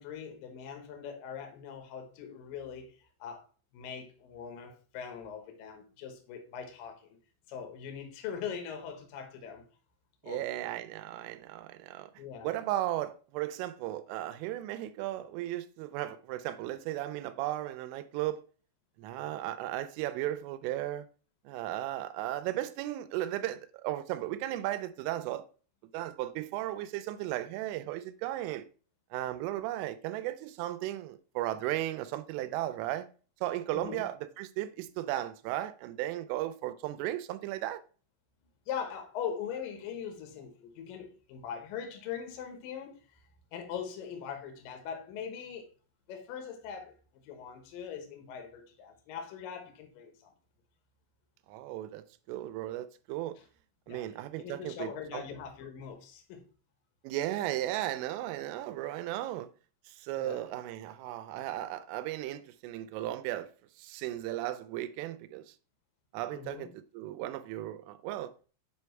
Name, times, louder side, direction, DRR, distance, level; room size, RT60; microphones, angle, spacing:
voice 1, 0.0-2.9 3.2-3.4 3.7-7.2 7.5-9.6 10.2-10.6 12.2-12.5 33.7-34.0 38.7-43.0 43.5-45.7 46.1-46.9 47.2-50.3 53.9-54.0 54.4-56.4 60.2-60.5 66.3-66.7, left 7 dB, 70° left, 2.2 m, -41 dB
voice 2, 10.2-12.1 12.4-18.4 19.0-21.1 21.5-25.4 25.9-28.7 29.1-33.1 33.4-37.8 51.5-53.4 53.9-55.3 57.0-59.5 59.9-63.5 63.8-65.5 66.1-68.3, right 14 dB, 85° right, 3.1 m, -35 dB
7.8 x 3.5 x 4.4 m
omnidirectional pair, 5.6 m